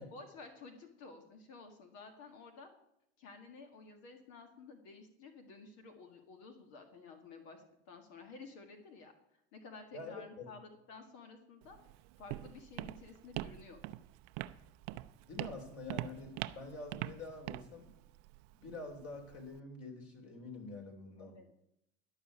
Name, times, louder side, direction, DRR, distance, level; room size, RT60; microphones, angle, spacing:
voice 1, 0.0-2.7 3.2-9.1 9.5-11.8 12.2-13.8 21.2-21.5, left 4 dB, 70° left, 6 dB, 1.9 m, -53 dB
voice 2, 9.9-10.5 15.3-17.9 18.6-21.4, left 3 dB, 50° left, 2 dB, 3.8 m, -46 dB
Walk footsteps, 11.6-19.6, right 16 dB, 70° right, 0.6 m, -44 dB
12.0 x 5.7 x 8.7 m, 0.79 s
supercardioid pair, 90°, 30 cm